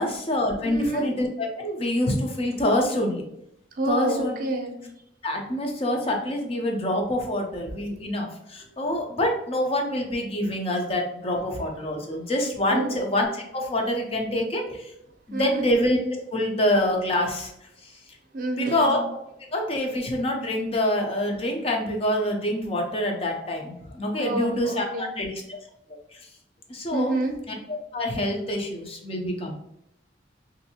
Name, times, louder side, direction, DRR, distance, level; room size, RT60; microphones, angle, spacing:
voice 1, 0.0-3.3 3.9-4.3 5.2-14.9 15.3-16.0 16.3-18.0 18.6-19.0 19.5-25.6 26.1-26.3 26.7-27.1 27.5-27.6 27.9-29.5, left 1 dB, 30° left, 2 dB, 0.5 m, -26 dB
voice 2, 0.6-1.1 3.8-4.7 8.6-8.7 12.7-13.0 15.3-15.7 18.3-19.0 24.2-25.1 26.9-27.3, right 2 dB, 50° right, 4 dB, 0.6 m, -29 dB
3.1 x 2.6 x 2.8 m, 0.78 s
head